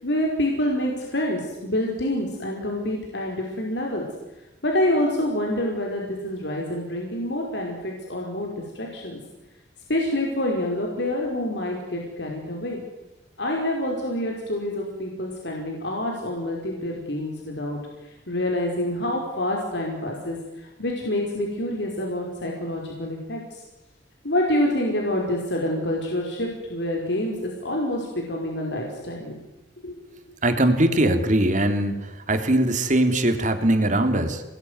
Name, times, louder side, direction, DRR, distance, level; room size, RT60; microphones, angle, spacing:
voice 1, 0.0-4.0 4.6-9.2 9.9-12.8 13.4-17.8 18.3-23.6 24.2-29.4 29.8-29.9, left 1 dB, 70° left, 0 dB, 5.3 m, -27 dB
voice 2, 30.4-32.0 32.3-34.4, right 1 dB, 40° right, 7 dB, 3.3 m, -21 dB
29.0 x 20.5 x 9.7 m, 1.0 s
head